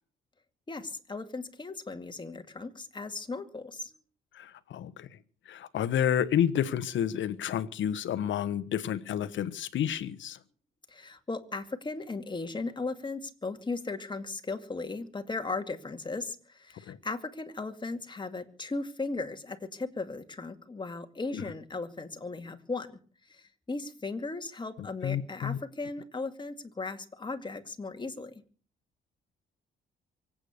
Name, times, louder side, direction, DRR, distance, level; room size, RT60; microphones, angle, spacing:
voice 1, 0.7-3.9 10.9-28.4, left 3 dB, 25° left, 2.3 m, -37 dB
voice 2, 4.3-5.1 5.4-10.4 16.8-17.0 21.3-21.4 24.8-25.6, left 9 dB, 70° left, 1.3 m, -30 dB
24.5 x 8.9 x 6.7 m
cardioid pair, 90°, 20 cm